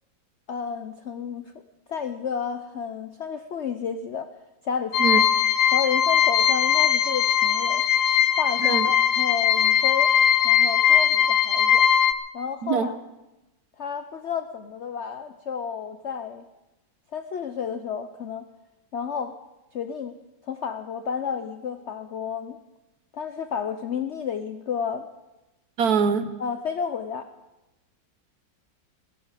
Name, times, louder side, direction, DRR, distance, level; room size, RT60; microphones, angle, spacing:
voice 1, 0.5-1.5 1.9-4.3 4.6-5.2 5.7-7.8 8.3-10.1 10.4-11.8 12.3-13.0 13.8-16.5 17.1-18.5 18.9-19.4 19.7-20.2 20.4-22.6 23.1-25.1 26.4-27.3, left 6 dB, 65° left, 9 dB, 0.6 m, -31 dB
sound 1, 4.9-12.1, left 9 dB, 85° left, 1.5 m, -20 dB
voice 2, 25.8-26.3, right 6 dB, 60° right, 11 dB, 1.2 m, -23 dB
17.5 x 16.5 x 4.9 m, 1.0 s
omnidirectional pair, 2.0 m